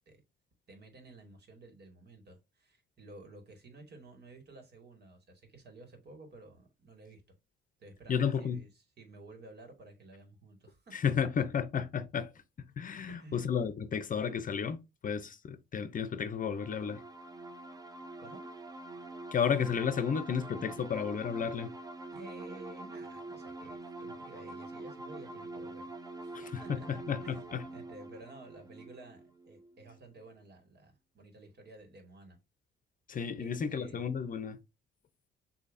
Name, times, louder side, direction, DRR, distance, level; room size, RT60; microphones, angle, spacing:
voice 1, 0.7-7.2 7.8-10.9 13.1-13.5 18.2-18.5 22.1-25.9 26.2-32.4 33.4-34.0, right 2 dB, 55° right, 2.0 m, -53 dB
voice 2, 8.1-8.6 10.9-12.3 12.8-17.0 19.3-21.7 26.3-27.6 33.1-34.6, left 7 dB, 45° left, 0.6 m, -32 dB
sound 1, 16.5-30.0, right 2 dB, 20° right, 0.7 m, -45 dB
6.6 x 2.8 x 2.6 m
cardioid pair, 90°, 20 cm